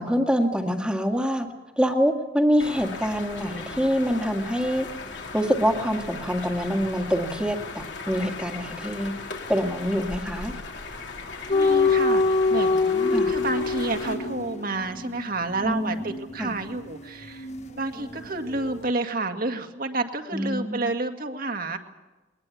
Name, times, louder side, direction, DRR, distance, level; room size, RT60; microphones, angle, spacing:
voice 1, 0.0-1.5 1.8-4.9 5.3-9.1 9.5-10.5 13.1-13.4 15.6-16.5 20.3-20.9, equal, 5° right, 3 dB, 1.9 m, -25 dB
sound 1, 2.6-14.1, left 3 dB, 65° left, 3.3 m, -38 dB
sound 2, 11.5-18.3 18.5-18.8, left 3 dB, 35° left, 1.1 m, -25 dB
voice 2, 11.5-17.5 17.7-21.8, right 2 dB, 50° right, 5 dB, 2.0 m, -30 dB
21.5 x 20.0 x 8.4 m, 1.2 s
head